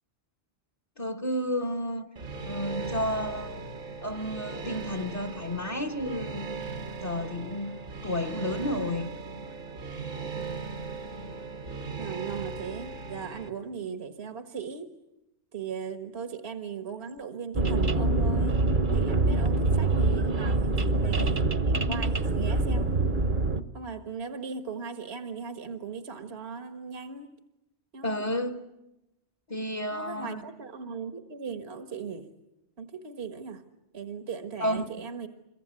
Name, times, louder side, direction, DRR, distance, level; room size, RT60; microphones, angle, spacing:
voice 1, 1.0-2.1 2.5-3.6 4.0-6.5 7.0-9.1 28.0-28.6 29.5-30.4 34.6-34.9, left 1 dB, 30° left, 1.5 m, -31 dB
sound 1, 2.2-13.5, right 4 dB, 90° right, 2.0 m, -38 dB
voice 2, 12.0-14.9 15.5-18.6 18.9-22.9 23.7-27.3 27.9-28.3 29.9-32.3 32.8-33.6 33.9-35.3, right 6 dB, 65° right, 1.7 m, -38 dB
sound 2, 17.5-23.6, right 2 dB, 45° right, 1.3 m, -25 dB
26.5 x 23.0 x 9.7 m
omnidirectional pair, 1.2 m